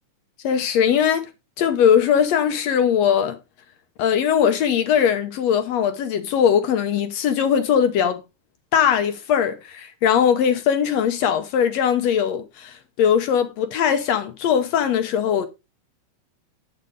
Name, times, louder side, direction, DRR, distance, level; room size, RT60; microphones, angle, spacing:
voice 1, 0.4-1.3 1.6-3.4 4.0-8.2 8.7-15.5, left 8 dB, 70° left, 1.9 m, -20 dB
8.0 x 7.7 x 3.8 m
omnidirectional pair, 3.4 m